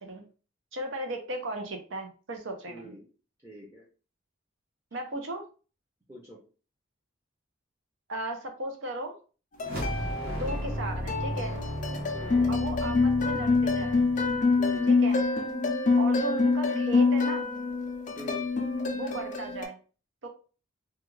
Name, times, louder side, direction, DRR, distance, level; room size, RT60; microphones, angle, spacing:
voice 1, 0.7-2.9 4.9-5.4 8.1-9.1 10.3-11.6 12.5-14.1 14.9-15.2 16.0-17.4 18.9-19.8 20.2-20.3, right 1 dB, 75° right, 5 dB, 0.6 m, -36 dB
voice 2, 2.7-3.0 3.4-3.8 6.1-6.4 10.2-10.6 12.1-12.5 14.6-15.0 18.2-18.4, equal, 15° right, -5 dB, 0.5 m, -45 dB
sound 1, 9.6-10.8 11.1-19.6, left 4 dB, 40° left, 0.4 m, -26 dB
sound 2, 9.6-15.0, equal, 50° right, 0.9 m, -35 dB
2.3 x 2.2 x 3.1 m, 0.36 s
head